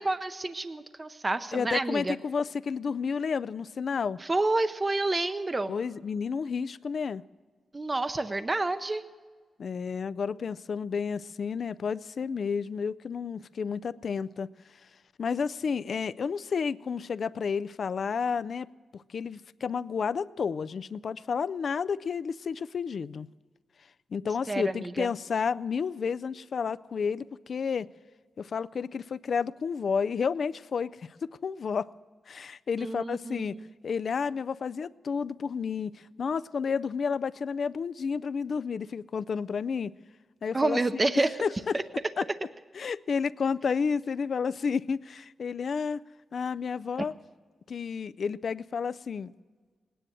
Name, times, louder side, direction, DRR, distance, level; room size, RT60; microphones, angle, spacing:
voice 1, 0.0-2.1 4.2-5.7 7.7-9.0 24.5-25.1 32.8-33.7 40.5-41.3 41.7-41.8, right 2 dB, 30° right, 10 dB, 0.6 m, -29 dB
voice 2, 1.5-4.2 5.7-7.2 9.6-14.5 15.2-18.7 18.9-23.3 24.1-27.9 28.4-30.9 31.2-31.9 32.3-33.6 33.8-35.9 36.2-39.9 40.4-40.8 41.2-41.8 42.2-42.3 42.7-46.0 46.3-47.1 47.7-49.3, left 6 dB, 65° left, 16 dB, 0.4 m, -31 dB
19.0 x 10.0 x 7.7 m, 1.5 s
cardioid pair, 70°, 0 cm